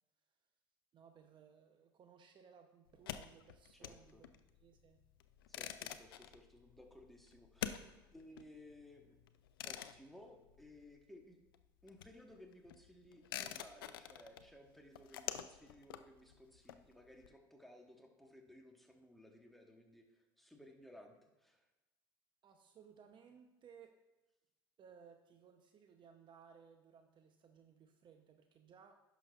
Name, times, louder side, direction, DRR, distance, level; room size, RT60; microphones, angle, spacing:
voice 1, 0.9-4.3 4.6-5.0 22.4-23.9 24.8-29.0, right 7 dB, 45° right, 6 dB, 0.7 m, -61 dB
sound 1, 2.9-11.2 11.5-17.3, left 11 dB, 90° left, 0.4 m, -48 dB
voice 2, 3.7-4.2 5.5-7.8 8.1-9.2 9.6-11.4 11.8-21.7, left 1 dB, ahead, 1 dB, 1.3 m, -59 dB
10.5 x 6.1 x 2.4 m, 1.1 s
hypercardioid pair, 75°, 12 cm